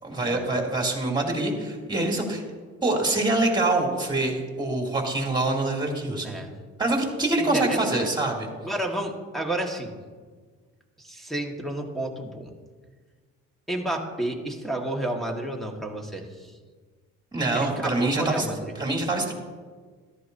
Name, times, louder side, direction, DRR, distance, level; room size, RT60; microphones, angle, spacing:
voice 1, 0.0-2.4 2.8-6.3 6.8-8.5 17.3-18.5 18.7-19.3, right 2 dB, 15° right, 0 dB, 2.9 m, -25 dB
voice 2, 7.4-8.1 8.6-10.0 11.0-12.5 13.7-16.5 17.5-18.7, right 1 dB, ahead, 1 dB, 1.8 m, -31 dB
14.0 x 12.0 x 2.8 m, 1.5 s
cardioid pair, 90°, 30 cm